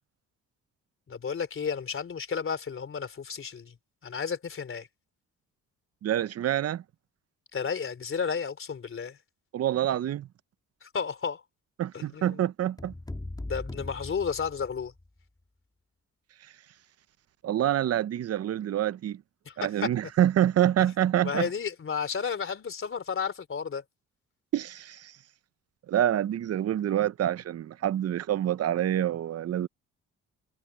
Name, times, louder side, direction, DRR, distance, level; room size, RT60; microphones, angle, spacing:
voice 1, 1.1-3.8 4.0-4.9 7.5-9.2 10.8-11.4 11.9-12.4 13.5-14.9 19.5-19.9 21.2-23.8, left 6 dB, 45° left, 3.5 m, -32 dB
voice 2, 6.0-6.8 9.5-10.3 11.8-12.9 17.4-19.2 19.6-21.5 24.5-25.1 25.9-29.7, right 11 dB, 55° right, 0.7 m, -26 dB
sound 1, 12.8-15.1, left 2 dB, 15° left, 3.7 m, -39 dB
cardioid pair, 90°, 30 cm